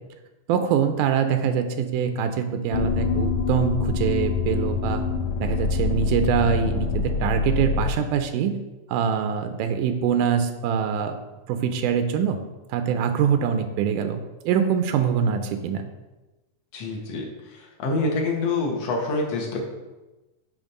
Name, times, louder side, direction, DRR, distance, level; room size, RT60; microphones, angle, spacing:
voice 1, 0.5-5.0 5.4-8.5 8.9-11.1 11.5-12.4 12.7-15.9, right 7 dB, 90° right, 7 dB, 2.1 m, -24 dB
sound 1, 2.7-7.9, left 5 dB, 75° left, 1.8 m, -25 dB
voice 2, 16.7-17.3 17.8-19.7, left 3 dB, 60° left, -1 dB, 2.2 m, -26 dB
8.7 x 3.2 x 5.4 m, 1.1 s
omnidirectional pair, 3.5 m